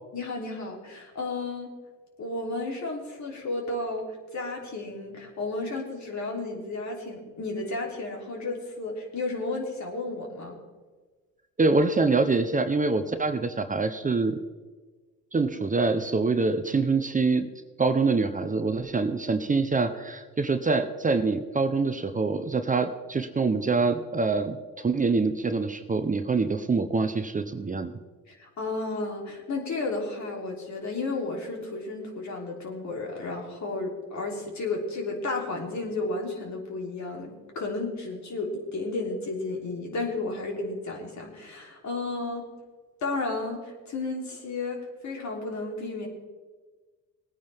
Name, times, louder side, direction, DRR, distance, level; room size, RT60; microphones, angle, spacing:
voice 1, 0.1-1.7 2.2-10.6 28.3-42.4 43.0-46.1, left 3 dB, 55° left, 0 dB, 3.6 m, -33 dB
voice 2, 11.6-14.4 15.3-17.5 17.8-27.9, right 3 dB, 25° right, 8 dB, 0.9 m, -25 dB
19.5 x 9.4 x 3.6 m, 1.3 s
supercardioid pair, 80°, 34 cm